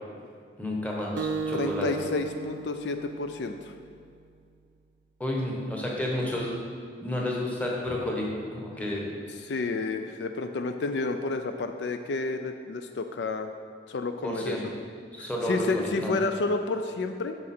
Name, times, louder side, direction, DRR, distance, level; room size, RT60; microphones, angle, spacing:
voice 1, 0.6-2.1 5.2-6.5 7.0-9.1 14.2-14.6 15.1-15.7 16.0-16.2, left 1 dB, 10° left, -2 dB, 1.1 m, -31 dB
Acoustic guitar, 1.2-3.9, right 4 dB, 75° right, 0.4 m, -35 dB
voice 2, 1.5-3.7 9.4-13.5 13.9-14.6 15.2-17.4, left 3 dB, 70° left, 7 dB, 0.4 m, -30 dB
8.7 x 6.2 x 4.3 m, 2.2 s
head